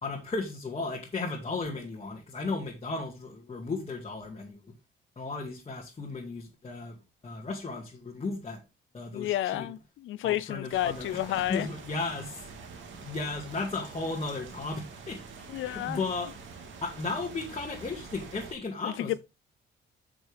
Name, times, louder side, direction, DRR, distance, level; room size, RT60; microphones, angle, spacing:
voice 1, 0.0-4.7 5.2-7.0 7.2-8.6 8.9-9.7 10.2-12.4 13.0-15.2 15.6-16.3 16.8-19.2, left 3 dB, 30° left, 2.2 m, -35 dB
voice 2, 9.1-11.7 15.5-16.0 18.8-19.2, left 14 dB, 80° left, 0.6 m, -31 dB
sound 1, 10.7-18.5, right 4 dB, 70° right, 2.3 m, -46 dB
9.2 x 6.2 x 3.5 m
cardioid pair, 90°, 20 cm